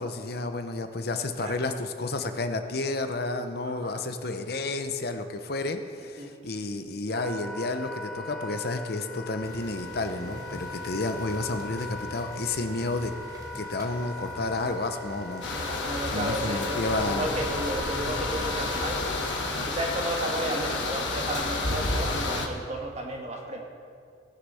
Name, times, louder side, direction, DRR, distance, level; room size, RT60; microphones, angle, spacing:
voice 1, 0.0-13.1 13.5-15.5 16.1-17.3, left 2 dB, 55° left, 8 dB, 0.8 m, -31 dB
voice 2, 3.6-4.0 6.1-6.3 15.5-19.0 19.6-23.6, right 1 dB, 35° right, 0 dB, 1.7 m, -33 dB
Wind instrument woodwind instrument, 7.1-19.4, left 3 dB, ahead, 1.1 m, -40 dB
sound 1, 9.4-20.0, equal, 20° right, 1.4 m, -43 dB
sound 2, 15.4-22.5, left 2 dB, 75° left, 1.4 m, -30 dB
17.5 x 6.6 x 5.6 m, 2.2 s
head